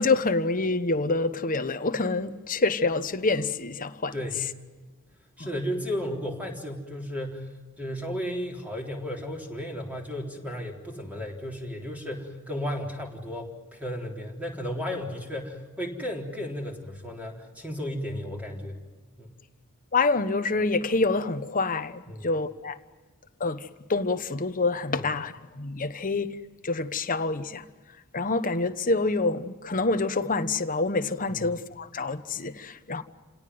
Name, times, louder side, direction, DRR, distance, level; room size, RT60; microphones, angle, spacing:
voice 1, 0.0-4.1 5.4-5.5 19.9-22.8 23.4-26.4 26.6-27.6 28.1-33.0, left 3 dB, 40° left, 1.1 m, -27 dB
voice 2, 5.4-7.5 7.8-18.8 19.2-19.3 22.1-22.3 24.9-25.1 31.3-31.4, equal, 5° right, 3.8 m, -34 dB
28.5 x 18.0 x 9.5 m
head